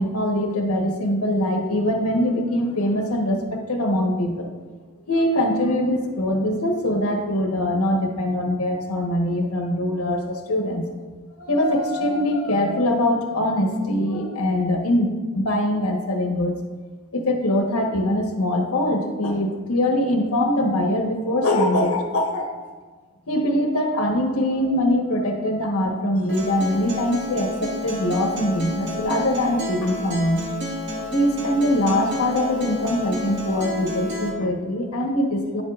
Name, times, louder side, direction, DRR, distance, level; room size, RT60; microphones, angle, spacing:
voice 1, 0.0-4.5 5.1-10.9 11.4-16.6 17.1-22.5 23.3-30.4 31.1-35.6, left 1 dB, 85° left, 2 dB, 1.2 m, -22 dB
Acoustic guitar, 26.3-34.3, left 1 dB, 55° right, 1.9 m, -31 dB
10.0 x 8.1 x 2.4 m, 1.4 s
head